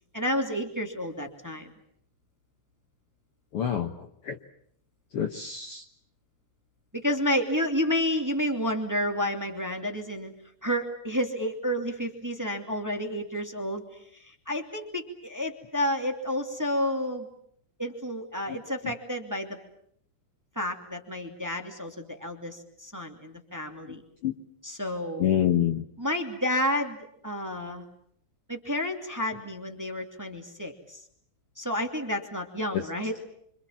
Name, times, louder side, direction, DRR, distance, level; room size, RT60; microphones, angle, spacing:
voice 1, 0.1-1.7 6.9-10.3 10.6-13.8 14.1-17.3 17.8-19.6 20.6-24.0 24.6-25.3 26.0-27.8 28.5-31.0 31.6-33.2, left 1 dB, 5° right, 4 dB, 2.2 m, -30 dB
voice 2, 3.5-4.4 5.1-5.8 18.5-18.6 18.8-18.9 24.2-24.3 25.2-25.9 32.7-32.9, left 10 dB, 60° left, 6 dB, 1.8 m, -27 dB
27.0 x 26.0 x 7.4 m, 0.68 s
omnidirectional pair, 3.4 m